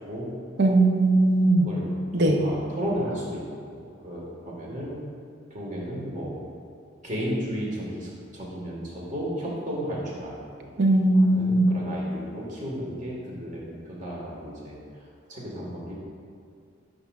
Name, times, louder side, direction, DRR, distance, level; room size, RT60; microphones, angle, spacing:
voice 1, 0.1-0.4 1.6-3.4 3.7-5.0 5.5-6.3 7.0-10.7 11.2-14.8 15.3-15.9, equal, 40° right, -5 dB, 1.5 m, -34 dB
voice 2, 0.6-1.7 2.1-2.4 10.8-11.7, right 2 dB, 55° right, 2 dB, 0.7 m, -19 dB
9.7 x 5.2 x 2.4 m, 2.4 s
head